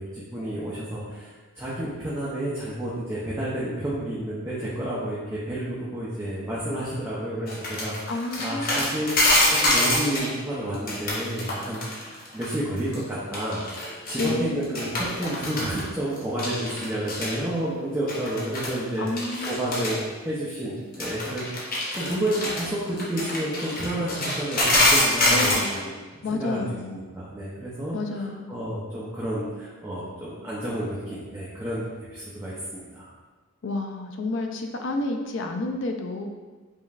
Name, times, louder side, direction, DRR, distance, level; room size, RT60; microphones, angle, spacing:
voice 1, 0.0-11.9 12.3-26.0 26.3-26.6 26.9-28.0 28.5-33.1, right 1 dB, 10° right, -9 dB, 0.6 m, -30 dB
sound 1, 7.5-10.3 10.7-12.5 12.8-13.0 13.3-14.3 14.6-15.8 16.2-17.3 18.1-18.8 19.1-20.0 20.9-25.8, left 1 dB, 40° left, 0.8 m, -25 dB
voice 2, 8.1-8.9 14.2-14.8 19.0-19.9 25.3-25.7 26.2-27.0 27.9-28.5 33.6-36.3, left 2 dB, 60° left, 4 dB, 0.4 m, -30 dB
5.2 x 3.0 x 2.4 m, 1.3 s
head